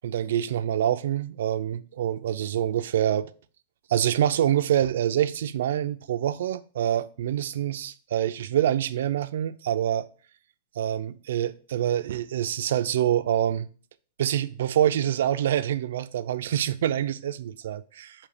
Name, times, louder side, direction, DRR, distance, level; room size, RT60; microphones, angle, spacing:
voice 1, 0.0-3.3 3.9-10.1 10.8-13.7 14.2-18.3, right 10 dB, 75° right, 0.5 m, -26 dB
7.0 x 2.9 x 4.9 m
supercardioid pair, 165°, 0 cm